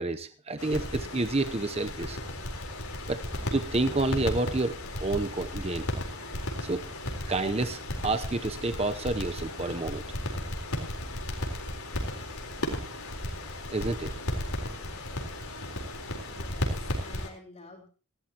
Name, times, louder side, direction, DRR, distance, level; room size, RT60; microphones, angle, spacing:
voice 1, 0.0-2.2 3.1-3.2 3.5-4.8 5.0-5.9 6.7-6.8 7.3-10.0 13.7-14.1, right 2 dB, 30° right, 9 dB, 0.8 m, -29 dB
sound 1, 0.6-17.3, left 1 dB, 90° left, 4.1 m, -35 dB
voice 2, 16.3-17.9, left 2 dB, 30° left, 1 dB, 3.8 m, -49 dB
19.0 x 16.0 x 3.0 m, 0.38 s
head